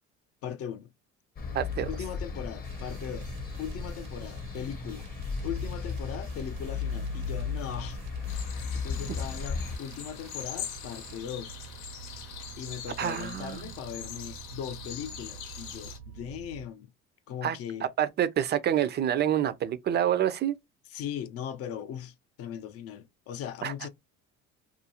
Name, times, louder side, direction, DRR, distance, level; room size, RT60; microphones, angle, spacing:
voice 1, 0.4-0.9 1.9-3.3 3.6-5.1 5.4-8.0 8.7-11.5 12.6-16.9 17.3-17.9 20.9-23.9, left 9 dB, 55° left, 0.5 m, -39 dB
sound 1, 1.4-9.8, left 5 dB, 30° left, 0.8 m, -35 dB
voice 2, 1.5-1.9 13.0-13.7 17.4-17.6 18.0-20.5 23.6-23.7, right 10 dB, 35° right, 0.4 m, -27 dB
sound 2, 2.6-16.7, right 8 dB, 85° right, 0.7 m, -47 dB
sound 3, 8.3-16.0, left 9 dB, 85° left, 0.8 m, -42 dB
2.6 x 2.4 x 2.8 m
cardioid pair, 120°, 30 cm